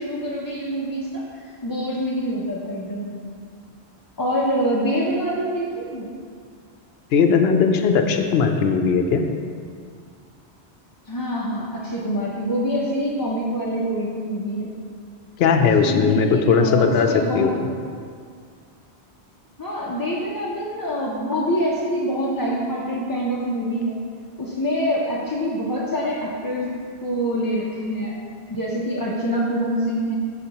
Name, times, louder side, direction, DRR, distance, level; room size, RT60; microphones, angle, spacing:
voice 1, 0.0-3.2 4.2-6.1 11.1-14.7 15.6-17.5 19.6-24.0 24.4-26.8 27.0-28.1 28.5-30.1, equal, 25° left, -5 dB, 0.5 m, -25 dB
voice 2, 7.1-9.2 15.4-17.7, left 5 dB, 70° left, 5 dB, 0.8 m, -18 dB
12.5 x 4.1 x 2.9 m, 2.1 s
omnidirectional pair, 1.1 m